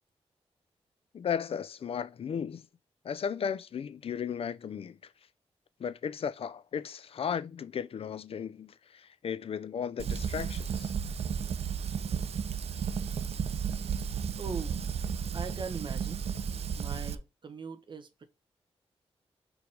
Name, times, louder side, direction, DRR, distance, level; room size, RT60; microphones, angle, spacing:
voice 1, 1.1-2.6 3.0-5.0 5.8-10.9, left 7 dB, 65° left, 0.5 m, -35 dB
Fire, 10.0-17.1, right 7 dB, 70° right, 0.6 m, -33 dB
voice 2, 14.4-14.8 15.3-16.2 16.7-18.2, right 4 dB, 45° right, 1.1 m, -40 dB
4.9 x 4.8 x 5.3 m
wide cardioid pair, 110°, 11 cm